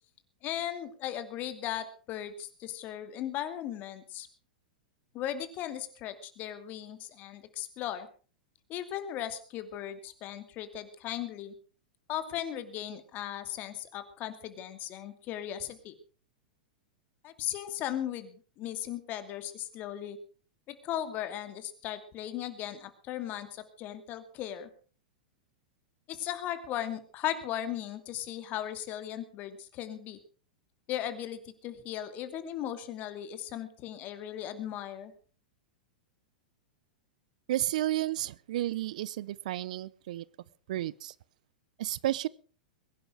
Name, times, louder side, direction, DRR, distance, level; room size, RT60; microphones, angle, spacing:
voice 1, 0.4-4.3 5.1-8.1 8.7-11.5 12.1-15.9 17.2-20.2 20.7-24.7 26.1-30.2 30.9-35.1, left 11 dB, 40° left, 10 dB, 2.5 m, -37 dB
voice 2, 37.5-40.3 40.7-41.1 41.8-42.3, right 14 dB, 60° right, 22 dB, 0.7 m, -32 dB
21.5 x 11.0 x 5.0 m, 0.39 s
figure-of-eight pair, 100°, 5 cm